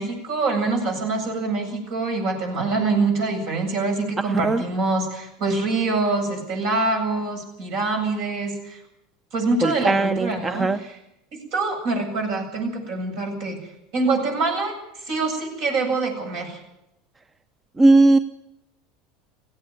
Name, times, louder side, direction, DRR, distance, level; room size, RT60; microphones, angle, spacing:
voice 1, 0.0-8.8 9.3-11.0 11.3-13.6 13.9-14.7 15.0-16.6, right 3 dB, 65° right, 3 dB, 8.0 m, -25 dB
voice 2, 9.6-10.8 17.8-18.2, right 2 dB, 20° right, 12 dB, 0.9 m, -18 dB
17.5 x 16.0 x 9.6 m, 0.87 s
hypercardioid pair, 85°, 0 cm